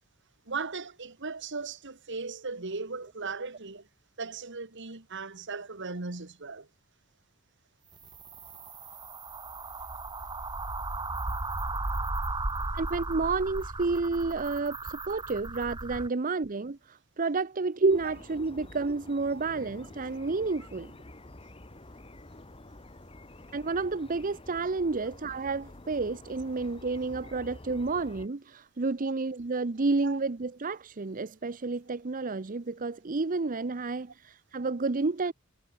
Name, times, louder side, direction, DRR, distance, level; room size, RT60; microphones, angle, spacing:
voice 1, 0.5-3.8 4.2-6.7 18.0-18.1 29.0-29.1 30.0-30.2, right 4 dB, 60° right, 1.9 m, -37 dB
sound 1, 7.9-16.1, right 2 dB, 20° right, 1.4 m, -35 dB
voice 2, 12.7-20.9 23.5-35.3, right 3 dB, 40° right, 0.7 m, -30 dB
sound 2, 17.9-28.3, left 1 dB, 25° left, 1.9 m, -49 dB
head